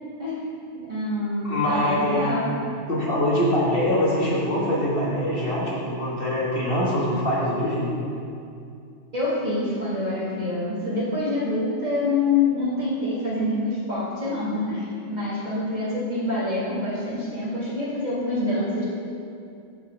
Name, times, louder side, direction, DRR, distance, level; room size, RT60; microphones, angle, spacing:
voice 1, 0.2-2.6 9.1-18.9, left 2 dB, 35° right, -9 dB, 2.1 m, -26 dB
voice 2, 1.4-2.4 2.9-7.9, left 1 dB, 45° left, -7 dB, 1.6 m, -23 dB
5.7 x 5.5 x 6.9 m, 2.5 s
omnidirectional pair, 1.3 m